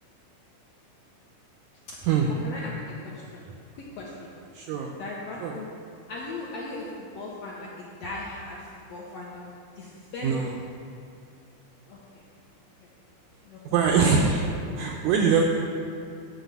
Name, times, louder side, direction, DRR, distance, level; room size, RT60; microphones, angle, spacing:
voice 1, 3.0-3.5 3.7-4.3 4.7-5.7 6.1-10.4 11.9-12.2 12.8-12.9 13.4-13.6 13.9-14.0, left 2 dB, 75° left, -4 dB, 1.5 m, -38 dB
voice 2, 4.5-4.9 5.4-5.5 10.2-10.6 13.7-14.5 14.8-15.5, right 5 dB, 85° right, 1 dB, 1.6 m, -23 dB
9.2 x 3.9 x 7.1 m, 2.5 s
omnidirectional pair, 3.8 m